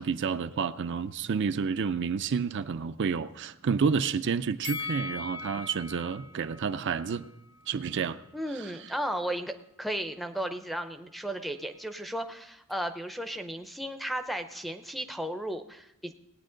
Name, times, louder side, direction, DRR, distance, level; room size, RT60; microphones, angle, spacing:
voice 1, 0.0-7.3 7.7-8.2 8.6-8.7, right 6 dB, 55° right, 0.4 m, -30 dB
Bell, 4.6-7.8 8.2-8.3, left 3 dB, 55° left, 1.3 m, -40 dB
voice 2, 8.3-16.1, right 1 dB, ahead, 0.6 m, -35 dB
18.5 x 9.0 x 3.8 m
head